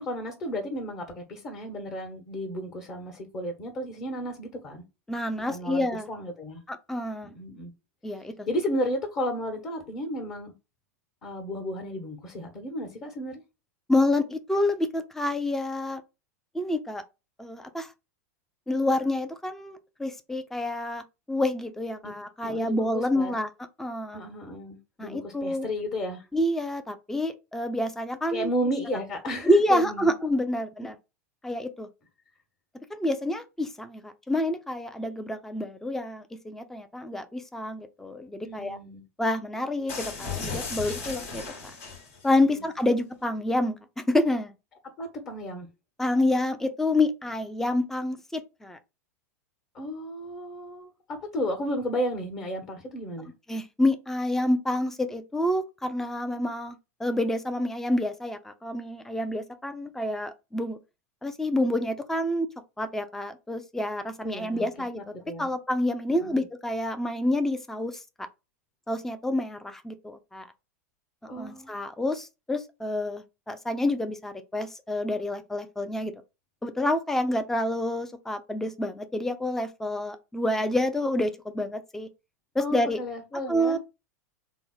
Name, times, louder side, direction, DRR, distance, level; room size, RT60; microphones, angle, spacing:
voice 1, 0.0-4.8 5.4-6.6 7.2-7.7 8.5-10.5 11.2-13.4 22.0-22.1 22.4-23.4 24.1-26.3 28.3-30.1 38.4-39.0 42.4-42.6 45.0-45.7 49.7-53.3 64.2-64.7 64.9-65.5 66.1-66.4 71.3-71.8 82.6-83.8, equal, 35° left, 1.2 m, -33 dB
voice 2, 5.1-6.1 6.7-7.3 8.0-8.5 13.9-16.0 16.5-17.0 17.4-17.9 18.7-23.5 23.8-24.2 25.0-25.7 26.3-28.5 29.4-31.0 31.4-31.9 32.9-38.8 39.2-41.4 42.2-44.5 46.0-48.8 53.5-60.8 61.2-62.5 62.8-65.1 65.4-68.3 68.9-70.5 71.4-76.1 76.6-82.1 82.5-83.0 83.5-83.8, left 1 dB, 5° left, 0.4 m, -28 dB
sound 1, 39.9-42.3, left 4 dB, 55° left, 1.2 m, -35 dB
3.9 x 2.1 x 3.8 m
figure-of-eight pair, 90°, 8 cm